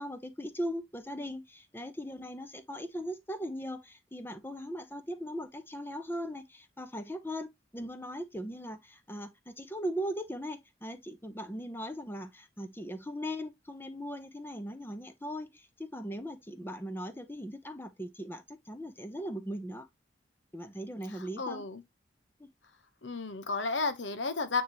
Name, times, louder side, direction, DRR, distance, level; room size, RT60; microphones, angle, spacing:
voice 1, 0.0-19.9 20.5-21.7 22.4-22.5, equal, 10° left, 0.9 m, -39 dB
voice 2, 21.4-21.8 23.0-24.6, left 4 dB, 90° left, 1.2 m, -32 dB
9.2 x 3.5 x 3.0 m
head